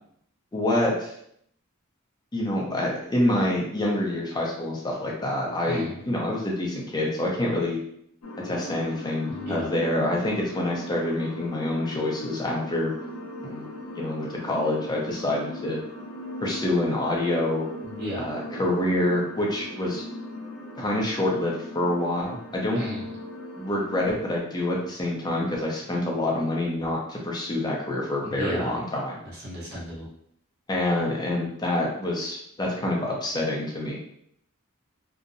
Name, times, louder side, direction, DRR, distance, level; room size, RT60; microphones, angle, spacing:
voice 1, 0.5-1.1 2.3-7.8 8.4-12.9 13.4-13.7 14.0-15.8 16.4-17.6 18.2-20.0 20.8-22.8 23.6-29.2 30.7-34.0, left 1 dB, 20° left, -2 dB, 0.4 m, -27 dB
voice 2, 5.6-6.0 9.3-9.7 17.8-18.3 22.7-23.0 28.2-28.8 29.4-30.1, equal, 50° right, -6 dB, 0.8 m, -33 dB
sound 1, 8.2-24.4, left 1 dB, 85° left, 0.5 m, -39 dB
2.6 x 2.0 x 2.5 m, 0.70 s
head